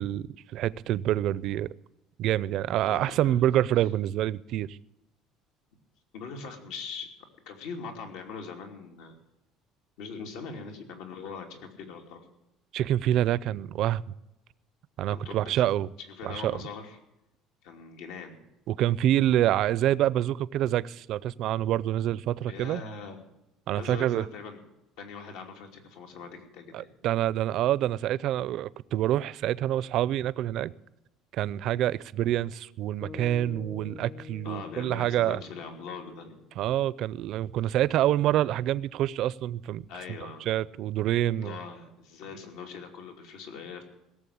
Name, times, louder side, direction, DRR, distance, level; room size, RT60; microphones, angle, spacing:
voice 1, 0.0-1.7 2.2-4.8 12.7-14.0 15.0-15.9 16.2-16.5 18.7-22.8 23.7-24.2 26.7-30.7 31.3-35.4 36.6-40.2 40.5-41.6, right 12 dB, 50° right, 0.4 m, -27 dB
voice 2, 2.8-3.6 6.1-7.1 7.5-9.2 10.0-12.3 15.1-15.6 16.0-17.0 17.6-18.4 22.5-23.3 23.7-24.6 25.0-27.0 34.4-36.4 39.9-40.5 41.4-43.8, left 5 dB, 80° left, 2.9 m, -41 dB
sound 1, 33.0-37.4, left 7 dB, 20° left, 0.5 m, -47 dB
17.5 x 7.3 x 8.5 m
cardioid pair, 170°, 0 cm